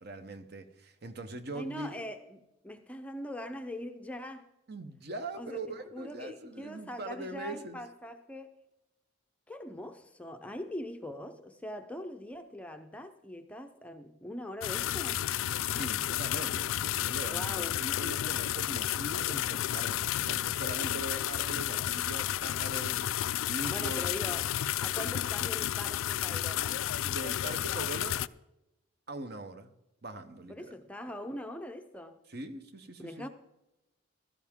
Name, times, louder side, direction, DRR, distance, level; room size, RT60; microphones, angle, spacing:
voice 1, 0.0-2.0 4.7-7.8 15.6-24.1 27.0-28.2 29.1-29.7 30.0-30.7 32.3-33.3, right 2 dB, 50° right, 0.9 m, -42 dB
voice 2, 1.5-4.5 5.4-5.6 5.9-8.6 9.5-15.2 17.3-17.8 23.7-24.5 24.8-26.8 30.5-32.2 33.0-33.3, left 1 dB, 5° left, 0.6 m, -42 dB
sound 1, 14.6-28.3, left 12 dB, 75° left, 0.3 m, -32 dB
15.5 x 13.0 x 3.7 m
head